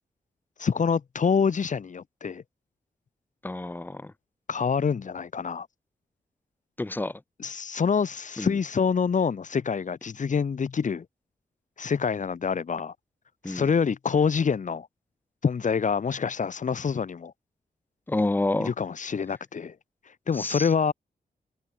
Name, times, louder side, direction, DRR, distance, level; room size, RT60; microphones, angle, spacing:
voice 1, 0.6-2.4 4.5-5.7 7.4-11.1 11.8-12.9 13.5-14.9 15.4-17.3 18.6-19.7 20.3-20.9, left 6 dB, 55° left, 5.4 m, -26 dB
voice 2, 3.4-4.1 6.8-7.2 8.4-8.6 13.4-13.6 18.1-18.7 20.3-20.7, left 2 dB, 10° left, 1.3 m, -28 dB
wide cardioid pair, 140°, 16 cm